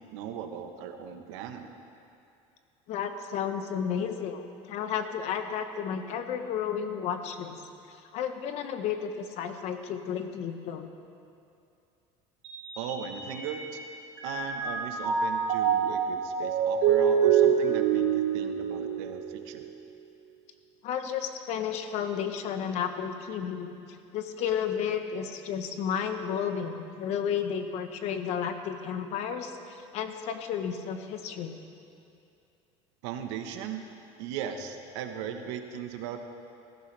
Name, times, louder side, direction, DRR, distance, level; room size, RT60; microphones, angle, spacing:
voice 1, 0.1-1.7 12.8-13.8 14.2-19.6 33.0-33.8 34.2-36.2, right 8 dB, 85° right, 6 dB, 1.2 m, -38 dB
voice 2, 2.9-7.6 8.1-10.9 20.8-23.7 24.1-31.5, left 8 dB, 50° left, 7 dB, 1.0 m, -32 dB
Mallet percussion, 12.4-13.8 14.2-19.6, right 7 dB, 70° right, 2.8 m, -26 dB
18.5 x 15.0 x 3.4 m, 2.6 s
cardioid pair, 155°, 14 cm